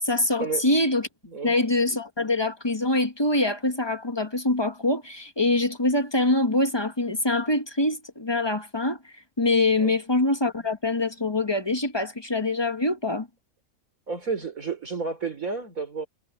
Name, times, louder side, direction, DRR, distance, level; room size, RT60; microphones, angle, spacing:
voice 1, 0.0-1.1 1.4-13.3, left 2 dB, 20° left, 1.0 m, -24 dB
voice 2, 14.1-16.1, right 4 dB, 70° right, 4.5 m, -31 dB
omnidirectional pair, 1.5 m